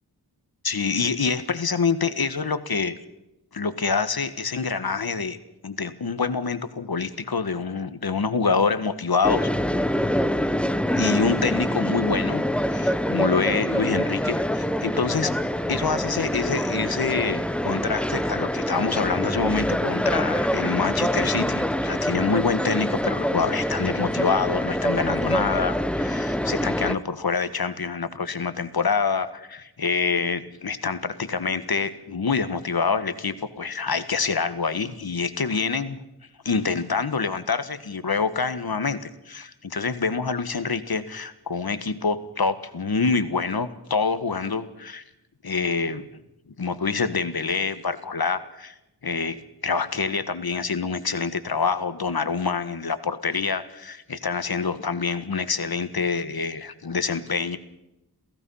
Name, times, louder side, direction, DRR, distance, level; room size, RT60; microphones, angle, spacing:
voice 1, 0.6-3.0 3.5-5.4 5.6-9.5 10.9-12.4 12.7-15.4 15.7-36.0 36.5-45.0 45.4-46.1 46.6-48.8 49.0-57.6, left 5 dB, 65° left, 11 dB, 1.6 m, -26 dB
sound 1, 9.2-27.0, equal, 5° left, 0.9 m, -25 dB
28.5 x 17.0 x 5.7 m, 0.86 s
wide cardioid pair, 75°, 40 cm